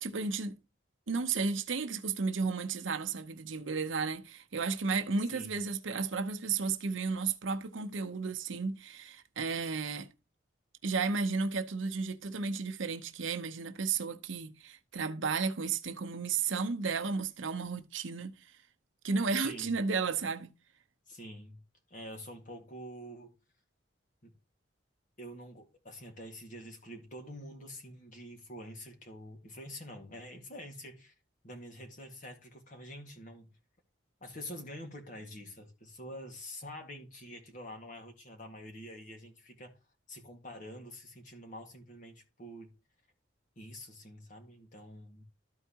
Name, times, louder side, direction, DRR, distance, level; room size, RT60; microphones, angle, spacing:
voice 1, 0.0-0.5 1.1-10.1 10.8-18.3 19.0-20.5, right 4 dB, 80° right, 0.8 m, -33 dB
voice 2, 19.4-19.7 21.1-21.6 21.9-23.3 24.2-24.3 25.2-31.1 31.4-33.5 34.2-39.7 40.1-42.7 43.6-45.2, equal, 40° left, 1.9 m, -47 dB
13.0 x 4.5 x 2.9 m
head